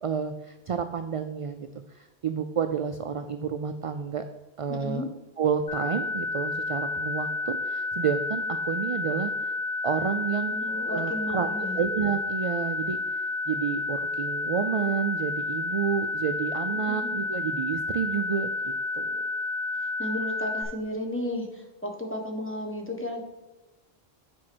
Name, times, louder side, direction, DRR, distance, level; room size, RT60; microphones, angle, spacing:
voice 1, 0.0-1.7 1.9-4.3 4.6-5.0 5.4-9.5 9.8-10.6 10.9-11.5 11.7-13.0 13.5-19.2, right 7 dB, 55° right, 8 dB, 0.4 m, -30 dB
voice 2, 4.7-5.1 10.4-11.8 16.8-17.3 20.0-23.2, left 1 dB, 10° left, 1 dB, 1.3 m, -34 dB
sound 1, 5.7-20.6, left 2 dB, 80° left, 1.7 m, -30 dB
7.5 x 4.4 x 6.1 m, 1.1 s
omnidirectional pair, 1.0 m